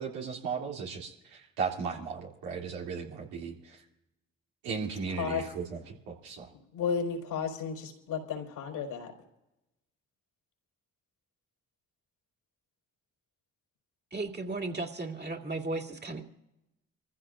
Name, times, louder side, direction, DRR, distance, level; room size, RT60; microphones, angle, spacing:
voice 1, 0.0-3.8 4.6-6.5, right 5 dB, 80° right, -2 dB, 2.9 m, -36 dB
voice 2, 6.7-9.1, left 6 dB, 75° left, 0 dB, 4.5 m, -33 dB
voice 3, 14.1-16.2, right 2 dB, 25° right, 3 dB, 2.8 m, -35 dB
27.5 x 15.0 x 2.6 m, 0.94 s
hypercardioid pair, 40°, 36 cm